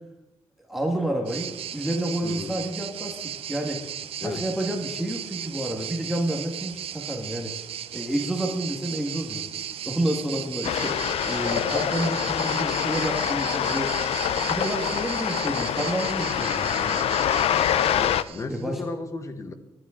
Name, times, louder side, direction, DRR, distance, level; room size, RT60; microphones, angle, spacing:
voice 1, 0.7-3.8 4.2-7.6 7.9-9.5 9.8-14.0 14.5-17.0 18.5-18.8, right 1 dB, ahead, 0 dB, 1.5 m, -29 dB
sound 1, 1.3-18.6, right 10 dB, 70° right, 0.6 m, -36 dB
voice 2, 2.2-2.6 4.2-4.4 17.9-19.5, left 3 dB, 30° left, 8 dB, 1.2 m, -34 dB
sound 2, 10.6-18.2, left 10 dB, 80° left, 0.5 m, -25 dB
24.5 x 10.5 x 3.7 m, 0.97 s
wide cardioid pair, 165°, 10 cm